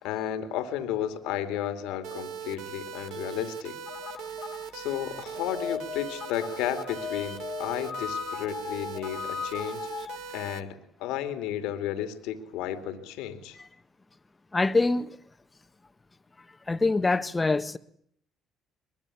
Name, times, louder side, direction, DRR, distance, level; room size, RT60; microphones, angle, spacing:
voice 1, 0.0-3.7 4.7-9.9 10.3-13.6, left 11 dB, 75° left, 2.5 m, -33 dB
sound 1, 2.0-10.6, right 7 dB, 75° right, 1.7 m, -40 dB
sound 2, 3.9-10.3, left 7 dB, 50° left, 1.8 m, -38 dB
voice 2, 14.5-15.2 16.7-17.8, left 3 dB, 20° left, 1.6 m, -25 dB
23.0 x 22.0 x 9.9 m
hypercardioid pair, 60°, 0 cm